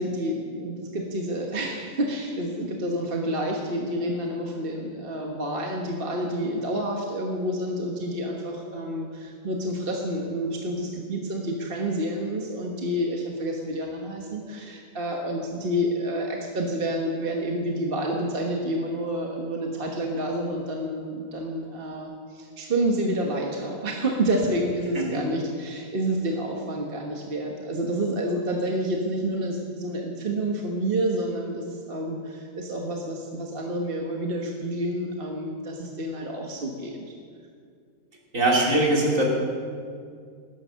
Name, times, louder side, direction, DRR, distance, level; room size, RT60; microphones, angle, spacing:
voice 1, 0.0-37.1, right 1 dB, 40° right, 0 dB, 1.4 m, -29 dB
voice 2, 38.3-39.2, right 2 dB, 55° right, -3 dB, 3.5 m, -21 dB
19.0 x 10.0 x 6.3 m, 2.2 s
omnidirectional pair, 1.6 m